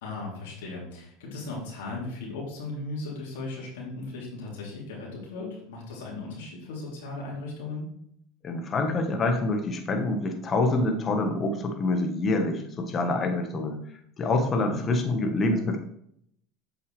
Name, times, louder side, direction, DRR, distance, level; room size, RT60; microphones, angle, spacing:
voice 1, 0.0-7.9 14.6-14.9, left 2 dB, 80° left, -4 dB, 3.2 m, -37 dB
voice 2, 8.4-13.8 14.2-15.8, left 2 dB, 35° left, 5 dB, 1.4 m, -26 dB
8.1 x 6.5 x 3.3 m, 0.70 s
hypercardioid pair, 95°, 0 cm